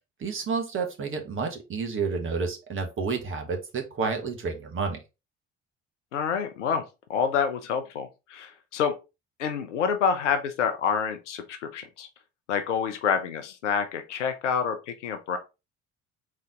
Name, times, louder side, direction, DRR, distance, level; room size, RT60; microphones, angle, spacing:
voice 1, 0.2-5.0, right 4 dB, 35° right, 4 dB, 1.3 m, -30 dB
voice 2, 6.1-6.8 7.1-8.9 9.4-12.1 12.5-15.4, left 6 dB, 80° left, 7 dB, 0.6 m, -27 dB
3.9 x 3.2 x 3.7 m, 0.27 s
figure-of-eight pair, 50°, 36 cm